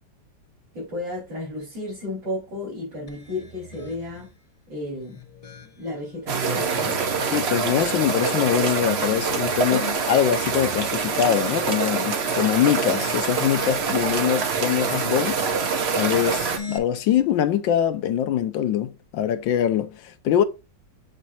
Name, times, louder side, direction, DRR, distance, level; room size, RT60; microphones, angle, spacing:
voice 1, 0.7-4.3 4.7-5.2 5.8-7.0, left 1 dB, 75° right, 5.2 m, -33 dB
sound 1, 3.1-4.4 4.9-6.1 6.6-7.7 9.1-11.3 11.8-12.9 13.4-14.5 16.0-16.8, left 4 dB, 50° left, 0.4 m, -42 dB
sound 2, 6.3-16.6, right 5 dB, 45° right, 0.9 m, -25 dB
voice 2, 7.3-15.4 15.9-20.4, left 10 dB, 85° left, 1.4 m, -23 dB
8.2 x 4.4 x 2.7 m
omnidirectional pair, 2.0 m